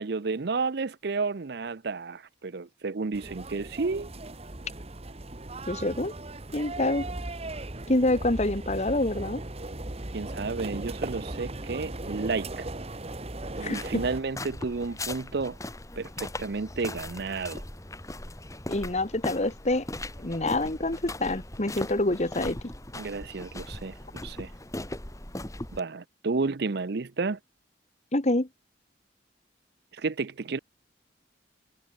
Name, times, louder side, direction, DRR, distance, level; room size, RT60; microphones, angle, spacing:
voice 1, 0.0-4.1 10.1-12.6 13.6-15.6 16.0-17.6 23.0-23.9 24.2-24.5 25.7-27.4 29.9-30.6, right 4 dB, 65° right, 0.6 m, -31 dB
sound 1, 3.1-14.2, right 2 dB, 35° right, 1.5 m, -37 dB
voice 2, 5.7-6.1 6.5-7.1 7.9-9.4 13.6-14.0 18.7-19.8 20.2-22.6 28.1-28.5, left 2 dB, 40° left, 1.6 m, -26 dB
sound 2, 13.5-25.8, left 1 dB, 20° left, 2.3 m, -39 dB
head